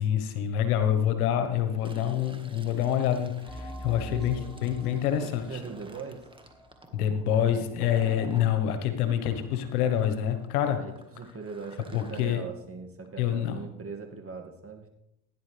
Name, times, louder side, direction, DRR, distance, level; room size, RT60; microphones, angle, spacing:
voice 1, 0.0-5.5 6.9-10.8 11.9-12.4 13.2-13.6, left 10 dB, 85° left, 8 dB, 1.4 m, -26 dB
Fill (with liquid), 1.7-8.5 9.0-12.3, right 2 dB, 10° right, 1.8 m, -50 dB
sound 1, 3.5-8.7, left 1 dB, 5° left, 4.4 m, -44 dB
voice 2, 4.0-4.6 5.2-6.2 10.8-14.9, right 4 dB, 30° right, 4 dB, 2.3 m, -40 dB
16.0 x 10.0 x 3.5 m, 0.86 s
hypercardioid pair, 70°, 43 cm